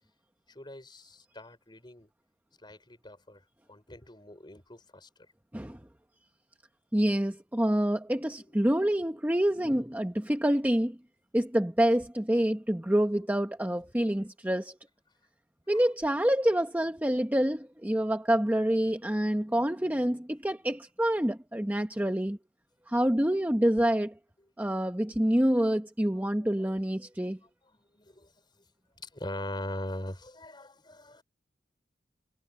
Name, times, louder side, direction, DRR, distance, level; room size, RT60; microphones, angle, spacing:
voice 1, 0.5-2.1 2.6-3.4 3.7-5.1 15.7-15.8 26.1-26.2 26.6-26.7 27.2-27.5 27.9-28.3 29.0-31.2, left 1 dB, 25° left, 4.8 m, -41 dB
voice 2, 6.9-11.0 11.3-14.8 15.7-22.4 22.9-24.1 24.6-27.4, right 1 dB, 10° right, 0.8 m, -27 dB
head